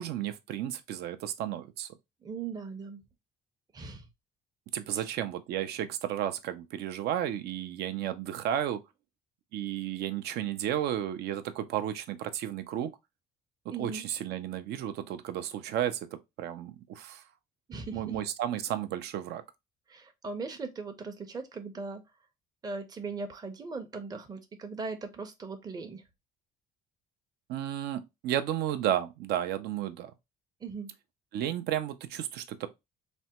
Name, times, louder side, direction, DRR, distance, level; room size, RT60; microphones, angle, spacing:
voice 1, 0.0-1.9 4.7-8.8 9.5-12.9 13.8-17.2 17.9-19.4 27.5-30.1 31.3-32.7, right 11 dB, 75° right, 0.5 m, -33 dB
voice 2, 2.2-3.0 3.7-4.1 5.0-5.1 13.7-14.0 17.7-18.2 19.9-22.0 22.6-26.0 30.6-30.9, right 4 dB, 25° right, 0.5 m, -39 dB
3.3 x 2.1 x 2.8 m
cardioid pair, 110°, 17 cm